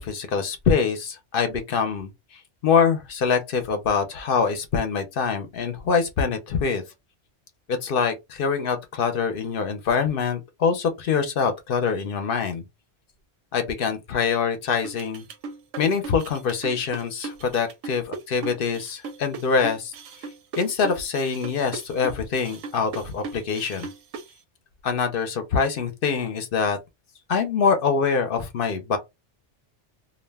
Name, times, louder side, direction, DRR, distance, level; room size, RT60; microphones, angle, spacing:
voice 1, 0.0-6.8 7.7-12.6 13.5-15.2 15.8-19.9 20.6-23.9 24.8-26.8 27.3-29.0, left 5 dB, 60° left, 0.6 m, -24 dB
sound 1, 14.8-24.3, right 4 dB, 85° right, 0.9 m, -37 dB
2.4 x 2.1 x 3.3 m
omnidirectional pair, 1.2 m